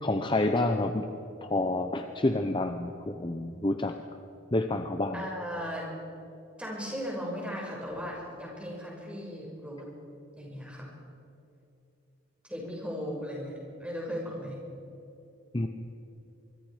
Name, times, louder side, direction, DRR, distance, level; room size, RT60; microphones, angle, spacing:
voice 1, 0.0-1.0 1.4-3.9 4.5-5.2 15.5-15.7, left 2 dB, 25° left, 6 dB, 0.8 m, -28 dB
voice 2, 5.1-5.9 6.6-9.9 10.4-10.9 12.5-14.6, equal, 5° right, -3 dB, 6.2 m, -37 dB
24.5 x 24.0 x 5.1 m, 2.7 s
head